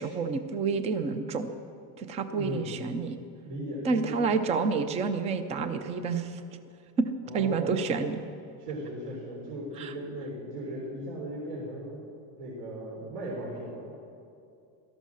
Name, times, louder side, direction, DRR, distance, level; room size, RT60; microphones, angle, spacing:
voice 1, 0.0-1.5 2.0-3.2 3.8-6.4 7.0-7.1 7.3-8.2 9.8-9.9, right 4 dB, 15° right, 9 dB, 0.4 m, -29 dB
voice 2, 2.3-2.7 3.4-4.3 7.3-8.0 8.6-12.0 12.4-14.0, right 1 dB, 70° right, -5 dB, 4.1 m, -37 dB
17.0 x 13.5 x 6.3 m, 2.6 s
cardioid pair, 165°, 47 cm